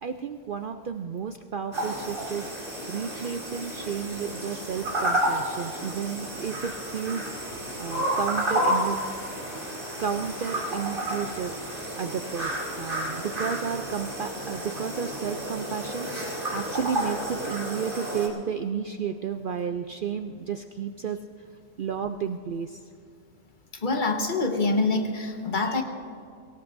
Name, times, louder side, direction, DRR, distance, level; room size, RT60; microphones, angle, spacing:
voice 1, 0.0-9.0 10.0-11.5 12.0-21.2 21.8-22.8, right 7 dB, 65° right, 7 dB, 0.5 m, -32 dB
sound 1, 1.7-18.3, right 1 dB, 40° right, 2.9 m, -31 dB
voice 2, 23.7-25.8, left 3 dB, 35° left, 4 dB, 1.4 m, -25 dB
23.5 x 17.5 x 2.6 m, 2.4 s
omnidirectional pair, 1.5 m